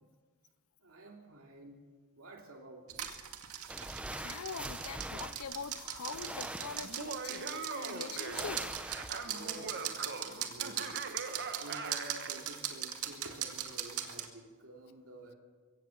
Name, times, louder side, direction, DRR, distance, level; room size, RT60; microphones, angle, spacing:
voice 1, 0.8-1.8 2.2-3.2 9.3-15.3, right 1 dB, 70° right, 2.9 m, -51 dB
sound 1, 2.9-14.3, right 10 dB, 90° right, 2.1 m, -40 dB
sound 2, 3.7-7.4 8.2-9.5, right 1 dB, 5° right, 0.8 m, -44 dB
voice 2, 4.1-8.7 11.5-11.8, left 5 dB, 80° left, 0.7 m, -44 dB
Laughter, 6.8-12.4, right 4 dB, 50° right, 1.7 m, -42 dB
23.0 x 16.5 x 7.4 m
head